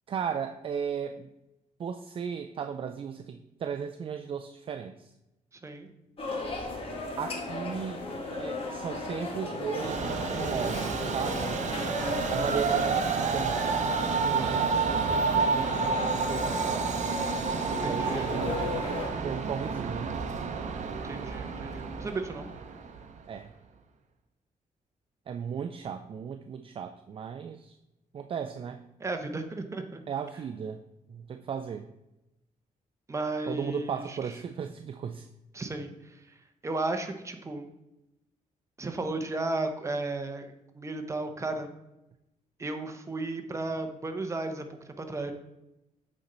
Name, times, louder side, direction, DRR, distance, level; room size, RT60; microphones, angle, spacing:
voice 1, 0.1-1.3 1.8-5.1 7.2-11.6 12.3-13.7 14.2-16.9 17.8-20.1 23.3-23.5 25.3-27.7 28.1-28.8 30.1-30.8 31.1-31.9 33.5-35.3, right 7 dB, 40° right, 7 dB, 0.4 m, -36 dB
sound 1, 6.2-19.1, left 2 dB, 40° left, 1.4 m, -36 dB
Train, 9.7-23.2, right 5 dB, 60° right, 0.7 m, -30 dB
voice 2, 17.8-18.3 21.0-22.5 29.0-30.0 33.1-34.3 35.5-35.9 36.3-36.4 36.6-37.7 38.8-40.5 40.7-41.7 42.6-44.6 45.0-45.3, right 2 dB, 20° right, 5 dB, 0.8 m, -34 dB
8.6 x 4.3 x 3.9 m, 0.91 s
cardioid pair, 125°, 14 cm